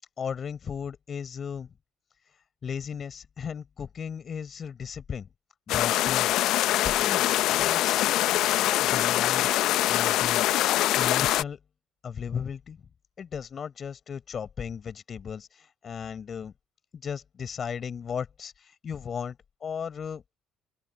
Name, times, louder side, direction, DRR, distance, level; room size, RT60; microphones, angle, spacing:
voice 1, 0.2-1.7 2.6-5.3 5.7-6.3 6.8-7.2 7.6-8.1 8.8-10.5 11.0-11.6 12.0-12.8 13.2-16.5 17.0-19.4 19.6-20.2, left 7 dB, 40° left, 5.6 m, -35 dB
sound 1, 5.7-11.4, left 15 dB, 55° left, 1.1 m, -24 dB
open air
figure-of-eight pair, 50°, 0 cm